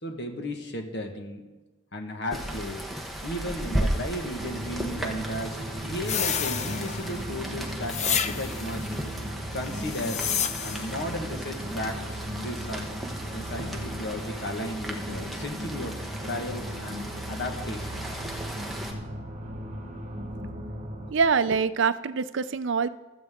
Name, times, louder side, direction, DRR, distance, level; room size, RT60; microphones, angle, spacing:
voice 1, 0.0-1.4 1.9-2.9 3.2-8.9 9.5-10.3 10.6-12.8 13.3-18.1, left 1 dB, 55° left, 4 dB, 1.5 m, -35 dB
Rain, 2.3-18.9, right 1 dB, ahead, 1.1 m, -36 dB
sound 1, 4.4-21.1, equal, 35° right, 1.3 m, -37 dB
sound 2, 6.0-7.2 7.9-8.8 9.7-11.0, left 8 dB, 30° left, 0.5 m, -30 dB
voice 2, 21.1-22.9, right 5 dB, 60° right, 13 dB, 0.5 m, -24 dB
16.0 x 13.0 x 3.7 m, 1.2 s
head